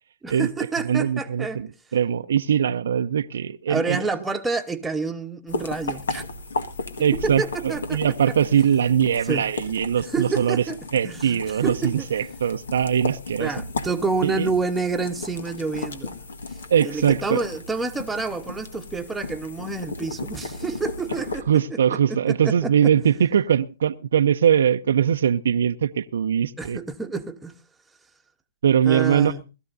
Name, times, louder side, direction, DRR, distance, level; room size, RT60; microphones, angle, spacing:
voice 1, 0.2-1.6 3.7-6.2 7.2-8.0 8.3-8.4 9.2-9.4 10.0-10.8 11.0-12.1 13.4-16.1 16.8-21.5 21.9-22.9 26.6-27.5 28.8-29.4, right 4 dB, 5° right, 1.1 m, -28 dB
voice 2, 0.8-1.7 1.9-4.0 7.0-10.6 10.9-13.5 14.2-14.5 16.7-17.4 21.5-26.8 28.6-29.3, right 8 dB, 70° right, 0.6 m, -21 dB
sound 1, 5.5-21.4, left 3 dB, 80° left, 1.6 m, -35 dB
20.0 x 13.0 x 2.7 m
hypercardioid pair, 130°, 0 cm